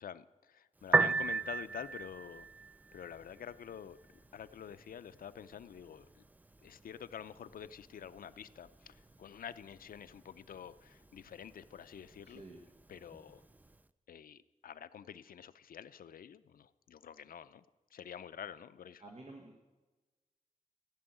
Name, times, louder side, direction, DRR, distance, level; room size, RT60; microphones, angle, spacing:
voice 1, 0.0-2.5 2.9-4.0 4.3-6.2 6.6-12.4 12.9-13.4 14.1-17.6 17.9-19.0, left 8 dB, 90° left, 13 dB, 0.5 m, -48 dB
Piano, 0.8-13.8, right 3 dB, 10° right, 0.4 m, -40 dB
voice 2, 12.2-12.6 19.0-19.6, right 2 dB, 45° right, -1 dB, 1.6 m, -51 dB
15.0 x 6.2 x 9.0 m, 1.2 s
wide cardioid pair, 140°, 14 cm